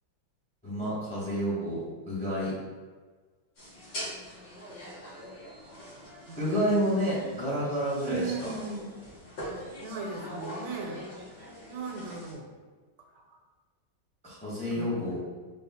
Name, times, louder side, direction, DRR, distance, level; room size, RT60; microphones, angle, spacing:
voice 1, 0.6-2.5 6.4-8.5 14.2-15.2, equal, 5° left, -7 dB, 0.6 m, -29 dB
sound 1, 3.6-12.3, equal, 75° left, 1.8 m, -43 dB
voice 2, 8.0-8.8 9.8-11.0 11.7-12.5 14.8-15.2, right 4 dB, 80° right, 2 dB, 1.2 m, -37 dB
3.8 x 2.3 x 4.1 m, 1.4 s
omnidirectional pair, 1.9 m